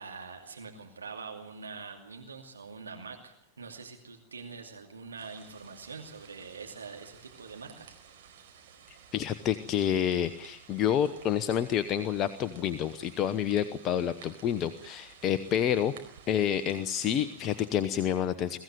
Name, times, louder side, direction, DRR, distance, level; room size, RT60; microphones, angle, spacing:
voice 1, 0.0-8.0, right 4 dB, 75° right, 2 dB, 2.6 m, -44 dB
sound 1, 5.2-17.7, right 8 dB, 55° right, 4.6 m, -54 dB
voice 2, 9.1-15.9 16.3-18.6, left 9 dB, 30° left, 11 dB, 1.0 m, -28 dB
23.0 x 15.5 x 9.3 m, 0.83 s
figure-of-eight pair, 90°, 0 cm